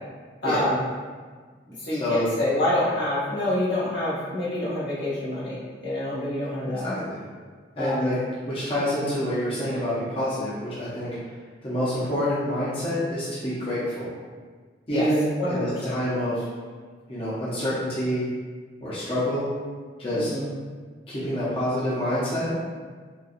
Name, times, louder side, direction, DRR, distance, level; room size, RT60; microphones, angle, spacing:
voice 1, 0.4-0.8 1.8-6.9 7.8-8.1 14.9-15.1 15.4-16.0 20.1-20.5, left 1 dB, 80° left, -9 dB, 1.3 m, -27 dB
voice 2, 1.9-2.3 6.7-7.2 7.8-8.2 8.5-11.2 11.6-14.1 14.9-16.5 17.1-18.3 18.8-19.5 20.0-20.3 21.1-22.5, equal, 30° left, -10 dB, 0.7 m, -27 dB
3.9 x 2.3 x 2.5 m, 1.5 s
head